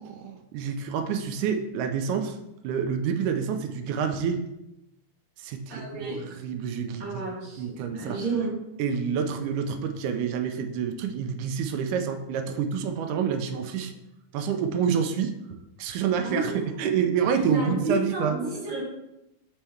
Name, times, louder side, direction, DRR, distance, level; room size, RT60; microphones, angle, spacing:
voice 1, 0.0-2.4 2.6-4.4 5.4-7.2 7.6-8.2 8.8-13.9 14.3-18.4, right 7 dB, 85° right, 7 dB, 2.1 m, -28 dB
voice 2, 5.7-6.2 7.0-8.5 16.2-17.0 17.4-18.8, right 3 dB, 40° right, -6 dB, 2.7 m, -31 dB
5.4 x 4.4 x 4.5 m, 0.89 s
omnidirectional pair, 3.6 m